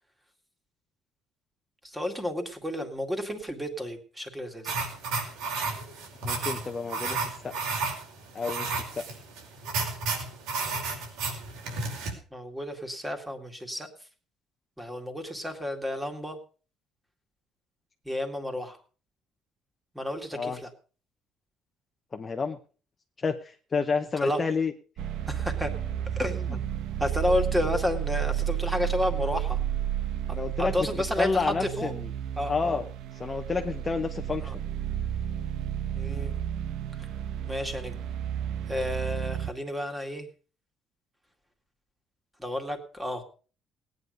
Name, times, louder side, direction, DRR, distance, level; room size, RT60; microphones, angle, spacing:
voice 1, 1.8-4.7 12.3-13.9 14.8-16.4 18.1-18.8 19.9-20.7 24.2-24.4 25.3-25.7 26.1-26.6 27.0-29.6 30.6-31.3 31.6-31.9 32.4-32.8 34.4-34.5 35.9-36.4 37.0-37.1 37.5-38.0 38.7-40.3 42.4-43.2, left 1 dB, 5° right, 5 dB, 2.1 m, -31 dB
sound 1, 4.7-12.1, right 4 dB, 85° right, 5.1 m, -32 dB
voice 2, 6.2-7.7 8.3-9.2 20.3-20.6 22.1-22.6 23.2-24.7 26.5-26.6 30.3-30.9 31.2-32.1 32.5-32.8 33.2-34.5, left 4 dB, 25° left, 5 dB, 0.9 m, -30 dB
sound 2, 25.0-39.5, right 10 dB, 65° right, 1.1 m, -32 dB
18.0 x 9.6 x 5.2 m, 0.39 s
cardioid pair, 150°, 0 cm